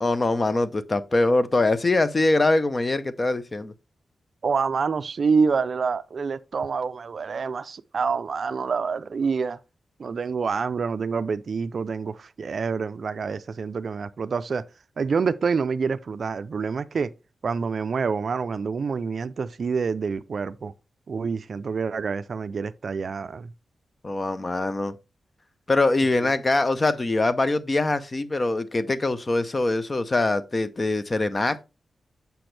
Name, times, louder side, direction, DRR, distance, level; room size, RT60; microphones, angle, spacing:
voice 1, 0.0-3.7 24.0-24.9 25.7-31.6, left 2 dB, 25° left, 0.5 m, -23 dB
voice 2, 4.4-9.6 10.0-14.6 15.0-17.1 17.4-20.7 21.1-23.5 24.5-24.6 26.2-26.3, right 5 dB, 50° right, 0.4 m, -27 dB
6.8 x 6.1 x 3.2 m
wide cardioid pair, 175°, 0 cm